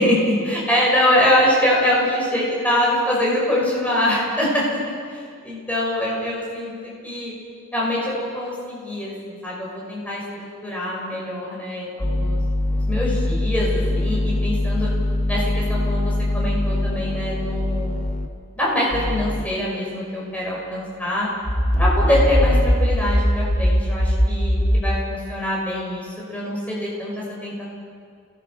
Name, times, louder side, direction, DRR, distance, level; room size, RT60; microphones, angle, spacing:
voice 1, 0.0-7.3 7.7-12.4 12.7-14.9 15.3-15.4 15.7-18.0 18.6-21.3 21.8-27.5, left 1 dB, 5° left, -5 dB, 6.2 m, -24 dB
sound 1, 12.0-18.3 18.9-19.4 21.7-22.7, left 1 dB, 35° left, 1.5 m, -23 dB
sound 2, 21.4-25.0, equal, 70° left, 2.7 m, -20 dB
29.5 x 20.0 x 6.0 m, 2.1 s
head